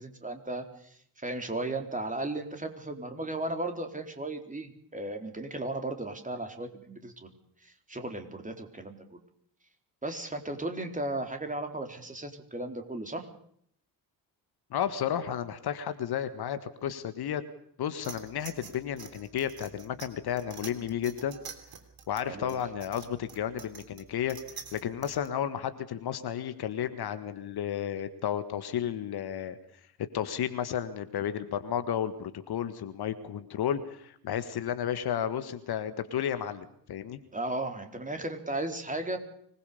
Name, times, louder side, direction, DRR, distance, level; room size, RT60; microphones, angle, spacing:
voice 1, 0.0-9.2 10.0-13.3 22.3-22.6 37.3-39.2, right 2 dB, 15° right, 5 dB, 4.0 m, -36 dB
voice 2, 14.7-17.4 17.8-21.4 22.1-29.6 30.1-37.2, left 9 dB, 50° left, 11 dB, 1.7 m, -32 dB
sound 1, 18.0-25.3, right 7 dB, 45° right, 3.6 m, -47 dB
25.0 x 20.0 x 7.0 m, 0.66 s
figure-of-eight pair, 45°, 49 cm